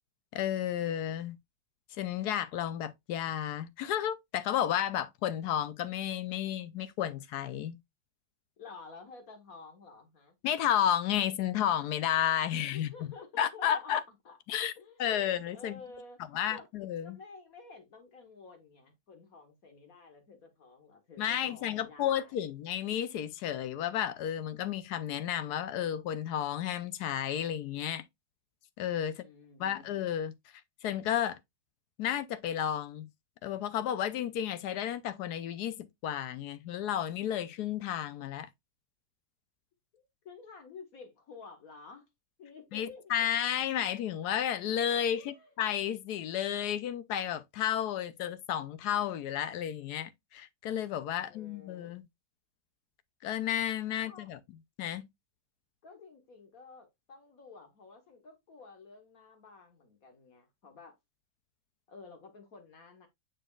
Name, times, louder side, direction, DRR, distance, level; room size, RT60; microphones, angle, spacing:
voice 1, 0.3-1.4 2.0-7.8 10.4-12.9 13.4-14.0 14.5-14.7 15.0-15.8 16.3-17.2 21.2-28.0 28.8-29.2 29.6-30.3 30.8-31.4 32.0-33.1 33.4-38.5 42.7-52.0 53.2-54.4 54.8-55.1, left 10 dB, 70° left, 1.1 m, -32 dB
voice 2, 8.6-10.4 12.7-14.4 14.8-16.7 17.0-22.4 29.0-29.9 39.9-42.1 42.4-43.2 45.1-45.6 51.1-52.0 54.0-54.3 55.8-61.0 61.9-63.1, left 4 dB, 55° left, 1.7 m, -52 dB
6.9 x 6.0 x 2.3 m
omnidirectional pair, 1.9 m